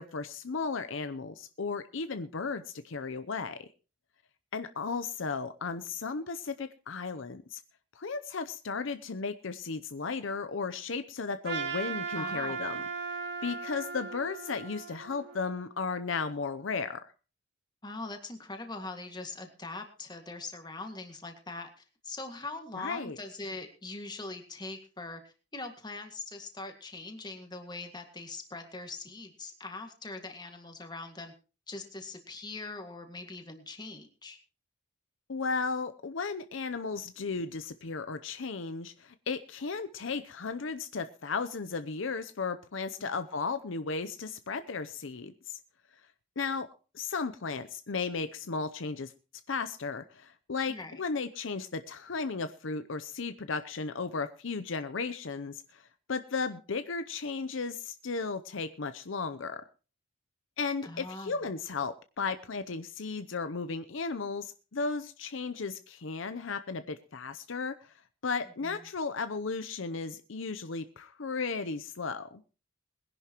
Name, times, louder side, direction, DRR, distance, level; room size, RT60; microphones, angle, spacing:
voice 1, 0.0-3.7 4.5-7.6 7.9-12.8 13.4-17.0 22.7-23.2 35.3-45.6 46.4-46.7 46.9-49.1 49.5-59.6 60.6-67.9 68.2-72.4, left 4 dB, 65° left, 10 dB, 0.7 m, -35 dB
Trumpet, 11.4-15.7, right 5 dB, 55° right, 2.3 m, -37 dB
voice 2, 12.1-12.7 17.8-21.7 22.0-31.3 31.7-34.4 43.0-43.1 50.7-51.0 60.8-61.4 68.6-68.8, left 3 dB, 20° left, 5 dB, 1.9 m, -42 dB
21.0 x 11.0 x 3.0 m, 0.34 s
head